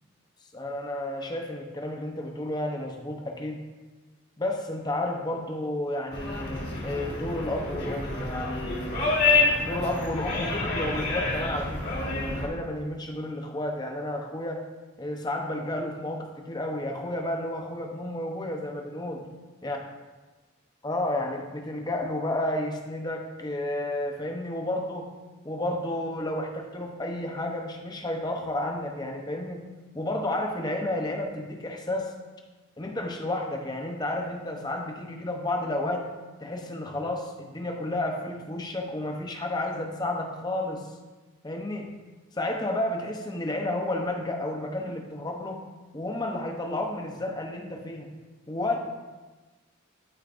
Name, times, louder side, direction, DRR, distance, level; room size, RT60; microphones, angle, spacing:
voice 1, 0.5-3.6 4.4-9.1 9.7-14.6 15.0-19.2 19.6-19.8 20.8-25.1 25.4-29.7 29.9-32.1 32.8-36.1 36.4-40.9 41.4-41.9 42.3-45.7 45.9-48.1 48.5-48.8, left 1 dB, 20° left, 3 dB, 0.7 m, -31 dB
sound 1, 6.1-12.5, left 3 dB, 55° left, 1.7 m, -28 dB
12.0 x 4.6 x 2.5 m, 1.3 s
head